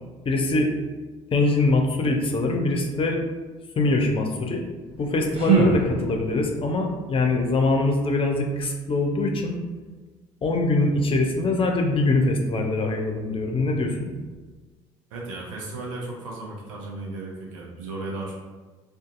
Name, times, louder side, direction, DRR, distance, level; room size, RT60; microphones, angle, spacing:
voice 1, 0.3-0.7 1.3-3.2 3.8-4.6 5.0-9.6 10.4-14.1, left 2 dB, 35° left, 2 dB, 0.5 m, -23 dB
sound 1, 4.8-6.5, right 6 dB, 35° right, 0.8 m, -24 dB
voice 2, 15.1-18.3, right 2 dB, 80° right, -3 dB, 0.7 m, -35 dB
2.6 x 2.4 x 2.5 m, 1.3 s
hypercardioid pair, 55°, 16 cm